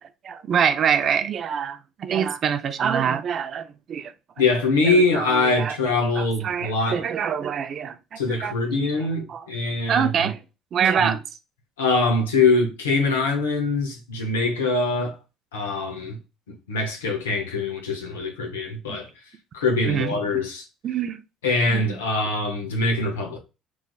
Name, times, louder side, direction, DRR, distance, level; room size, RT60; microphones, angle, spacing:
voice 1, 0.2-4.1 4.8-5.8 6.2-8.5 9.3-9.5 9.9-10.4 10.7-11.2 18.9-19.0 19.9-20.2 20.8-21.2 21.7-21.8, right 7 dB, 50° right, 0.3 m, -25 dB
voice 2, 4.4-7.0 8.2-10.1 11.0-11.2 11.8-15.2 15.5-16.2 16.7-19.1 19.5-20.6 21.4-23.4, left 3 dB, 80° left, 0.7 m, -23 dB
3.1 x 2.5 x 2.2 m
hypercardioid pair, 55°, 0 cm